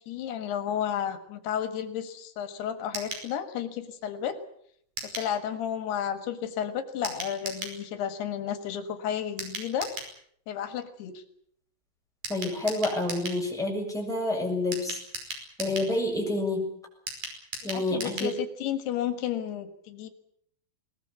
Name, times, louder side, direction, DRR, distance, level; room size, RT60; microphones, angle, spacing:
voice 1, 0.0-4.4 5.0-9.9 10.5-11.2 17.6-20.1, left 9 dB, 85° left, 10 dB, 3.6 m, -32 dB
sound 1, 2.9-3.3 5.0-5.3 7.0-7.8 9.4-10.1 12.2-13.4 14.7-15.9 17.1-18.3 18.6-18.7 19.0-19.1, right 3 dB, 55° right, 6.7 m, -37 dB
voice 2, 12.3-15.0 15.6-16.7 17.6-18.3, left 2 dB, ahead, -1 dB, 6.8 m, -28 dB
22.0 x 20.0 x 8.3 m, 0.67 s
omnidirectional pair, 4.6 m